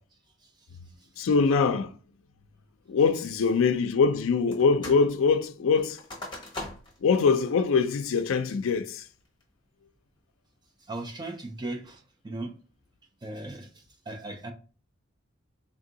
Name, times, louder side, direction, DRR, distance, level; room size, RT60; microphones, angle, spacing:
voice 1, 1.2-1.9 2.9-6.0 7.0-9.0, left 5 dB, 75° left, 0.4 m, -23 dB
sound 1, 4.5-5.1 5.3-7.1 7.5-7.6 8.1-8.5 9.0-9.4, left 1 dB, 20° left, 1.0 m, -41 dB
voice 2, 10.9-12.5 13.2-13.7 14.1-14.5, right 2 dB, 20° right, 0.5 m, -37 dB
3.5 x 2.6 x 3.8 m
head